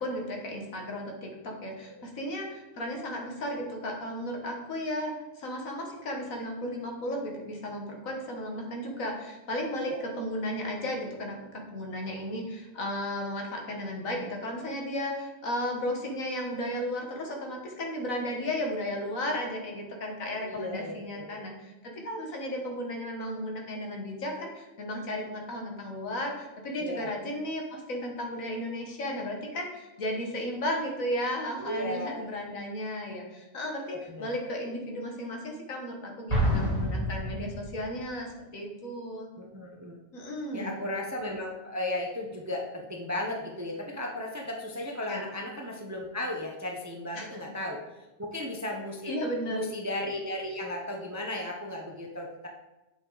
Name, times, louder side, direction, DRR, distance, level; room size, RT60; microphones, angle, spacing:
voice 1, 0.0-39.3 40.1-40.8 45.1-45.3 47.2-47.3 49.0-49.6, left 1 dB, 75° left, 1 dB, 1.8 m, -34 dB
voice 2, 20.4-21.5 26.8-27.1 31.6-32.3 33.9-34.3 39.4-40.0 40.5-49.2 49.5-52.5, left 1 dB, 15° right, 1 dB, 0.6 m, -35 dB
Explosion, 36.3-38.1, equal, 20° left, 3.2 m, -28 dB
9.0 x 5.4 x 3.9 m, 1.1 s
omnidirectional pair, 1.4 m